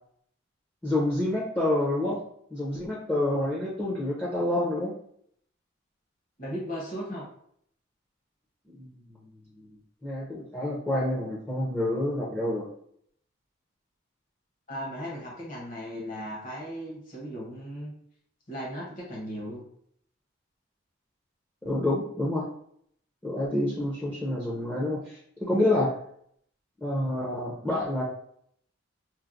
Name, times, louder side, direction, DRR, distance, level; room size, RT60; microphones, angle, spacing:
voice 1, 0.8-2.2 2.5-4.9 8.8-9.3 9.5-9.7 10.0-12.7 21.6-22.5 23.2-25.9 26.8-28.0, left 1 dB, 10° left, -5 dB, 0.5 m, -28 dB
voice 2, 6.4-7.3 14.7-17.9 18.5-19.6, equal, 40° left, -4 dB, 1.0 m, -36 dB
4.4 x 2.1 x 2.5 m, 0.66 s
head